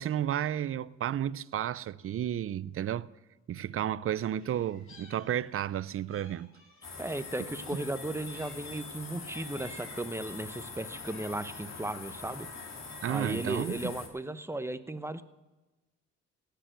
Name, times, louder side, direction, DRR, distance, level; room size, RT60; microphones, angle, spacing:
voice 1, 0.0-3.1 3.5-6.5 13.0-13.9, right 10 dB, 45° right, 0.5 m, -32 dB
Meow, 4.3-5.7 6.1-8.8 9.2-10.2 10.8-11.6, left 1 dB, 45° left, 6.4 m, -55 dB
sound 1, 6.8-14.1, left 4 dB, 60° left, 3.3 m, -44 dB
voice 2, 7.0-12.5 13.1-15.2, right 1 dB, 10° right, 0.9 m, -36 dB
18.0 x 6.9 x 9.0 m
cardioid pair, 90°, 30 cm